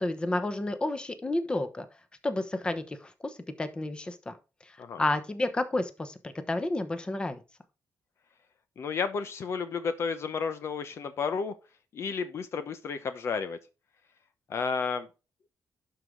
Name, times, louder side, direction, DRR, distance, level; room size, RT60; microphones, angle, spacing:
voice 1, 0.0-1.8 2.2-4.3 5.0-7.4, left 2 dB, 15° left, 1.1 m, -31 dB
voice 2, 8.8-11.5 11.9-13.6 14.5-15.1, left 5 dB, 55° left, 0.8 m, -32 dB
11.5 x 4.7 x 3.8 m
cardioid pair, 135°, 5 cm